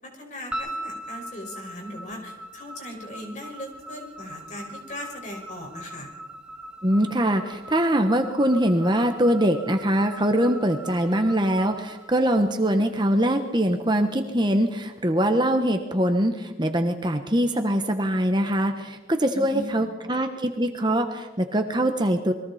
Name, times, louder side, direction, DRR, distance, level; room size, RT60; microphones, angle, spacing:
voice 1, 0.0-6.1 19.3-19.9, left 1 dB, 40° left, 1 dB, 5.7 m, -38 dB
sound 1, 0.5-12.8, right 1 dB, 5° right, 2.4 m, -40 dB
voice 2, 6.8-22.3, right 1 dB, 25° right, 5 dB, 1.3 m, -23 dB
28.5 x 22.5 x 4.3 m, 1.1 s
head